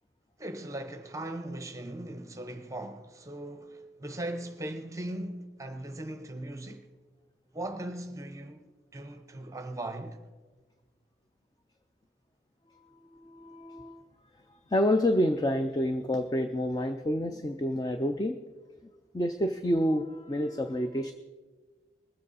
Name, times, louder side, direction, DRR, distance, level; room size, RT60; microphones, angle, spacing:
voice 1, 0.4-6.9 7.5-10.2, right 1 dB, 20° right, 0.8 m, -39 dB
voice 2, 12.9-14.0 14.5-18.4 19.1-21.1, left 1 dB, 20° left, 0.4 m, -28 dB
20.5 x 7.7 x 4.1 m
head